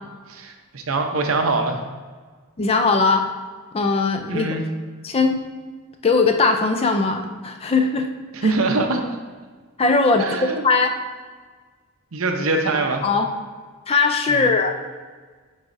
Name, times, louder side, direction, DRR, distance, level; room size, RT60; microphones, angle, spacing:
voice 1, 0.3-1.8 4.3-4.6 8.3-9.0 10.1-10.7 12.1-13.1 14.3-14.5, right 3 dB, 65° right, 4 dB, 0.7 m, -23 dB
voice 2, 2.6-3.3 3.7-4.5 5.0-5.4 6.0-8.1 8.4-8.5 9.8-10.9 13.0-13.3 13.9-14.8, left 4 dB, 25° left, 6 dB, 0.4 m, -19 dB
9.3 x 4.1 x 2.6 m, 1.5 s
head